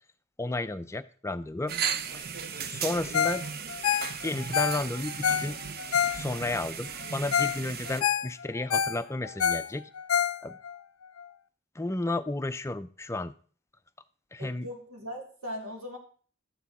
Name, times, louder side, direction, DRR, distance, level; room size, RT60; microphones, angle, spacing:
voice 1, 0.4-1.7 2.1-2.3 2.6-3.4 4.2-5.6 6.1-9.8 10.4-10.6 11.8-13.3 14.3-14.7, left 2 dB, 15° left, 11 dB, 0.5 m, -32 dB
sound 1, 1.7-8.0, right 7 dB, 45° right, 0.7 m, -36 dB
Ringtone, 3.1-3.4 3.7-6.6 7.0-7.1 7.3-7.6 7.9-10.7 11.2-11.3, left 8 dB, 80° left, 0.5 m, -27 dB
voice 2, 14.4-16.0, equal, 80° right, 1 dB, 2.8 m, -39 dB
12.5 x 8.6 x 4.2 m, 0.44 s
head